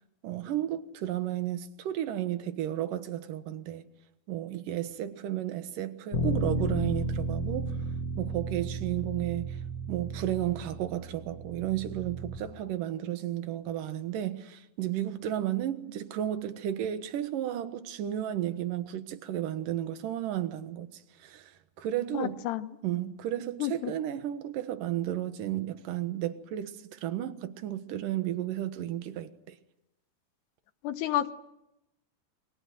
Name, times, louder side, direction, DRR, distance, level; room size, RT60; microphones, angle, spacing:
voice 1, 0.2-3.9 4.3-7.8 8.2-9.6 9.9-22.4 22.8-29.6, right 12 dB, 65° right, 2.6 m, -33 dB
Bass guitar, 6.1-12.4, right 2 dB, 50° left, 2.0 m, -33 dB
voice 2, 22.1-22.7 23.6-23.9 30.8-31.3, left 13 dB, 75° left, 3.1 m, -30 dB
28.5 x 23.5 x 7.8 m
omnidirectional pair, 4.9 m